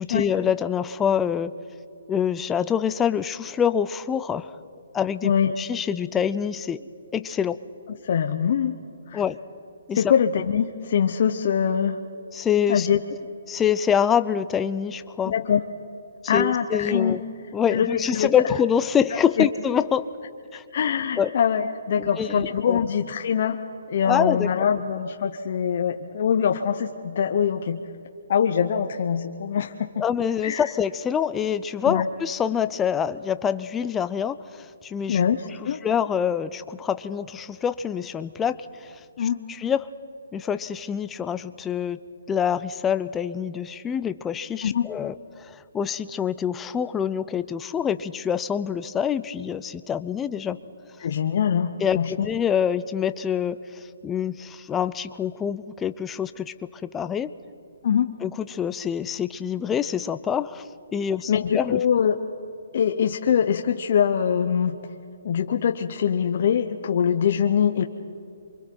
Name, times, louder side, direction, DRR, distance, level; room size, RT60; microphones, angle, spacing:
voice 1, 0.0-1.5 2.1-4.6 4.9-5.3 5.6-7.6 9.1-9.4 9.9-10.1 12.3-12.9 13.5-15.3 16.3-17.2 17.5-20.1 20.5-20.6 21.2-21.3 22.0-22.8 24.0-24.5 30.0-35.2 35.8-38.9 39.2-39.3 39.6-39.9 40.3-42.0 42.3-50.6 51.8-56.5 56.8-57.3 58.2-60.6 60.9-61.8, left 8 dB, 10° left, 12 dB, 0.4 m, -26 dB
voice 2, 5.2-5.6 8.0-8.7 9.1-9.2 10.0-12.0 12.7-13.0 15.2-15.6 16.3-17.2 17.7-18.3 19.4-19.5 20.7-23.6 23.9-27.8 28.3-30.0 30.4-30.7 31.8-32.1 35.1-35.8 39.2-39.4 44.6-44.9 51.0-52.3 57.8-58.1 61.3-62.2 62.7-64.8 65.2-67.8, left 8 dB, 40° left, 5 dB, 0.8 m, -23 dB
28.5 x 24.0 x 4.6 m, 2.7 s
hypercardioid pair, 170°, 0 cm